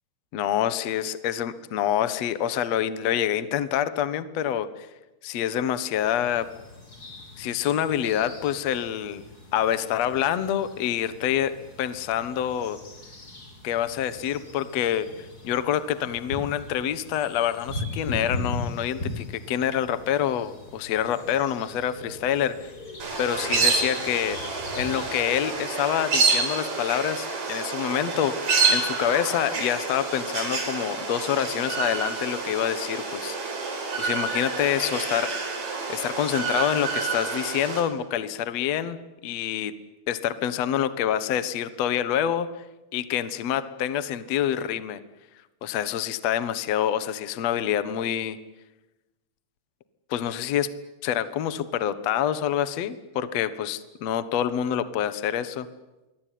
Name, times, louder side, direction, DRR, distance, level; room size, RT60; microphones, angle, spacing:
voice 1, 0.3-4.9 5.2-6.5 7.4-9.2 9.5-11.5 11.8-12.8 13.6-22.7 23.2-24.4 24.7-28.3 28.7-33.4 33.7-35.3 35.9-39.7 40.1-42.5 42.9-45.0 45.6-48.4 50.1-50.7 51.0-55.7, left 10 dB, 60° left, 13 dB, 1.9 m, -27 dB
sound 1, 6.0-25.6, left 2 dB, 25° left, 4.5 m, -39 dB
sound 2, 23.0-37.8, right 4 dB, 60° right, 6.5 m, -28 dB
27.0 x 23.0 x 9.4 m, 1.1 s
omnidirectional pair, 4.5 m